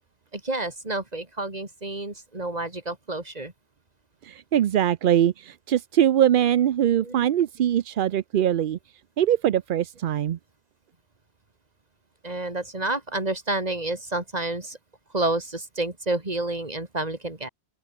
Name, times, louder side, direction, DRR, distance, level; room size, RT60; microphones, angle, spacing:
voice 1, 0.3-3.5 7.0-7.3 12.2-14.8 15.1-17.5, right 2 dB, 35° right, 3.1 m, -29 dB
voice 2, 4.2-8.8 9.2-10.4, right 10 dB, 60° right, 0.7 m, -22 dB
open air
omnidirectional pair, 1.1 m